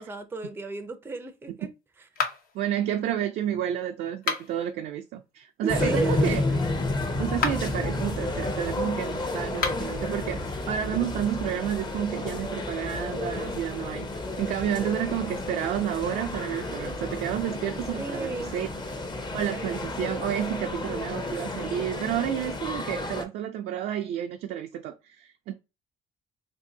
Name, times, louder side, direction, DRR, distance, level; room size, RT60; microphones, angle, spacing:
voice 1, 0.0-1.7 5.6-6.4 6.7-6.8 18.0-18.6, right 3 dB, 15° right, 0.5 m, -33 dB
sound 1, 2.1-2.7 4.1-4.7 7.3-7.8 9.5-10.0, left 6 dB, 60° left, 0.8 m, -31 dB
voice 2, 2.5-6.4 7.2-18.7 19.3-25.5, right 10 dB, 70° right, 0.4 m, -30 dB
sound 2, 5.7-23.2, left 2 dB, 25° left, 0.7 m, -31 dB
2.7 x 2.6 x 3.7 m
cardioid pair, 110°, 17 cm